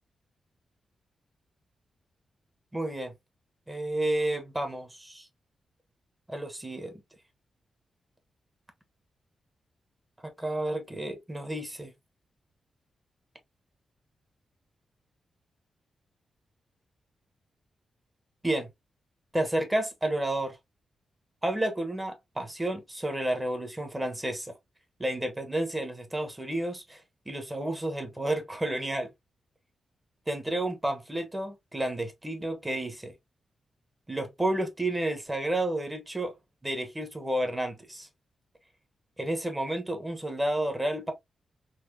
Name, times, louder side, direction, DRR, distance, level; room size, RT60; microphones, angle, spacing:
voice 1, 2.7-3.1 3.7-5.3 6.3-6.9 10.2-11.9 18.4-18.7 19.3-20.6 21.4-24.5 25.0-29.1 30.3-33.1 34.1-36.3 36.6-38.1 39.2-41.1, right 1 dB, 15° right, 1.3 m, -31 dB
4.3 x 2.9 x 2.8 m
cardioid pair, 90°, 0 cm